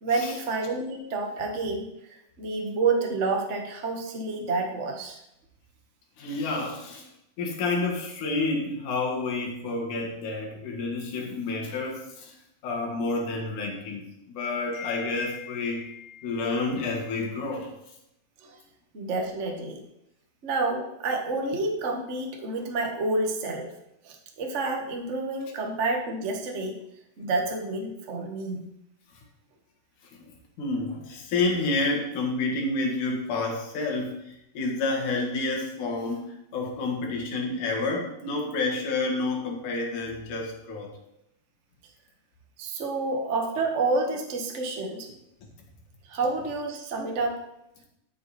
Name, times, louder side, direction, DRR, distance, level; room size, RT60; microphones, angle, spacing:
voice 1, 0.0-1.9 2.4-5.2 18.4-18.6 18.9-19.8 20.4-23.7 24.0-26.8 27.2-28.6 42.6-45.1 46.1-47.4, right 3 dB, 55° right, 2 dB, 0.8 m, -29 dB
voice 2, 6.2-7.1 7.4-12.3 12.6-17.7 30.1-30.2 30.6-40.9, left 3 dB, 75° left, -1 dB, 3.2 m, -29 dB
13.0 x 6.5 x 4.2 m, 0.82 s
omnidirectional pair, 3.6 m